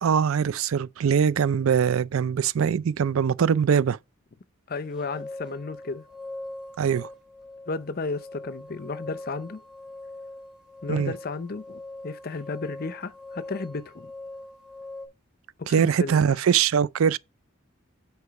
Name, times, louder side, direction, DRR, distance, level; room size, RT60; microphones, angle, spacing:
voice 1, 0.0-4.0 6.8-7.1 10.9-11.1 15.7-17.2, right 7 dB, 75° right, 0.4 m, -22 dB
voice 2, 4.7-6.0 7.7-9.6 10.8-14.1 15.6-16.4, left 3 dB, 45° left, 0.6 m, -33 dB
sound 1, 4.7-15.1, left 2 dB, 5° right, 2.5 m, -42 dB
8.2 x 4.7 x 4.7 m
head